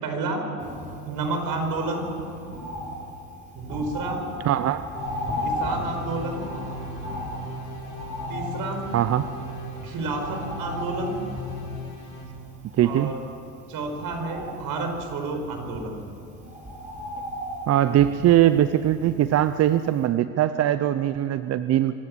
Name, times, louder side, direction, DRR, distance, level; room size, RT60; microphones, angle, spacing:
voice 1, 0.0-0.5 1.1-2.1 3.5-4.2 5.4-6.5 8.3-8.8 9.8-11.2 12.8-13.2 13.7-15.9, right 3 dB, 55° right, 4 dB, 4.8 m, -30 dB
Bird, 0.6-19.7 20.0-20.1, equal, 20° right, 4.7 m, -36 dB
voice 2, 4.4-4.8 8.9-9.3 12.8-13.1 17.7-21.9, right 12 dB, 35° right, 12 dB, 0.6 m, -21 dB
sound 1, 4.9-12.2, left 1 dB, 90° left, 6.3 m, -38 dB
25.0 x 13.0 x 8.6 m, 2.7 s
supercardioid pair, 100°, 42 cm